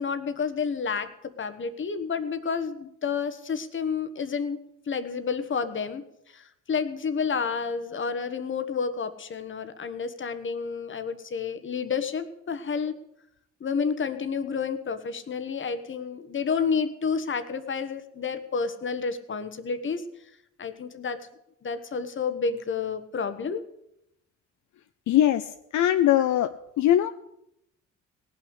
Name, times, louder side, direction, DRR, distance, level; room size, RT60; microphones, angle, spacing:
voice 1, 0.0-4.6 4.9-12.9 13.6-20.0 20.6-21.3 21.6-23.6, left 5 dB, 40° left, 10 dB, 1.3 m, -30 dB
voice 2, 25.1-27.1, left 12 dB, 70° left, 9 dB, 0.6 m, -22 dB
18.0 x 6.1 x 8.2 m, 0.80 s
cardioid pair, 90°, 30 cm